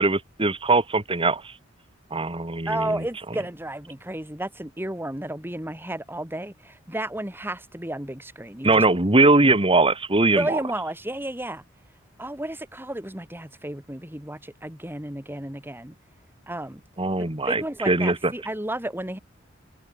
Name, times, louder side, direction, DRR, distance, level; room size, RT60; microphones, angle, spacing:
voice 1, 0.0-1.5 2.1-3.0 8.6-10.6 17.0-18.3, right 2 dB, 25° right, 2.2 m, -21 dB
voice 2, 2.7-8.8 10.3-11.6 12.2-16.0 16.5-16.8 17.5-19.2, right 1 dB, 10° right, 3.8 m, -32 dB
head